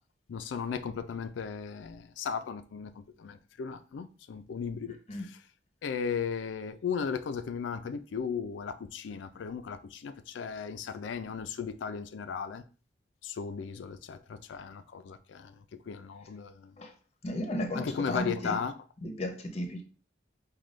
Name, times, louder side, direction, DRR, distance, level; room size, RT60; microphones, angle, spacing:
voice 1, 0.3-5.0 5.8-12.6 13.2-16.7 17.8-18.7, left 6 dB, 80° left, 0.4 m, -36 dB
voice 2, 17.2-18.6 19.0-19.8, left 1 dB, 35° left, 0.6 m, -34 dB
5.1 x 2.2 x 3.1 m
head